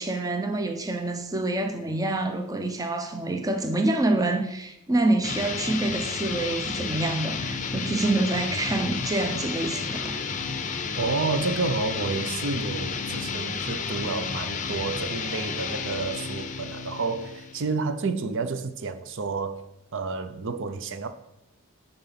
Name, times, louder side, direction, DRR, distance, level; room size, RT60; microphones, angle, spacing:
voice 1, 0.0-10.2, right 2 dB, 15° right, 0.7 m, -27 dB
sound 1, 5.2-17.7, left 5 dB, 35° left, 0.6 m, -32 dB
voice 2, 11.0-19.6 19.9-21.1, right 4 dB, 60° right, 0.6 m, -30 dB
9.3 x 4.0 x 5.8 m
head